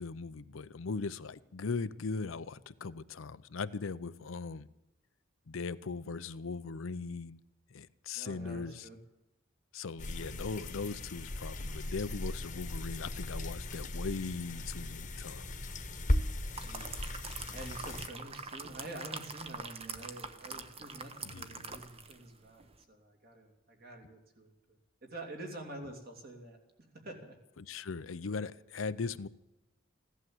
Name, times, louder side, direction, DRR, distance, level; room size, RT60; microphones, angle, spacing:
voice 1, 0.0-4.7 5.5-7.4 7.7-8.8 9.7-15.5 21.3-21.7 27.6-29.3, left 4 dB, 75° left, 0.6 m, -39 dB
voice 2, 8.1-9.0 16.6-17.0 17.5-26.6 26.9-27.4, right 1 dB, 45° right, 2.7 m, -47 dB
sound 1, 10.0-18.1, left 1 dB, 35° left, 1.2 m, -37 dB
sound 2, 16.2-22.3 22.6-22.8, right 4 dB, 30° right, 0.9 m, -44 dB
15.5 x 11.5 x 7.8 m
head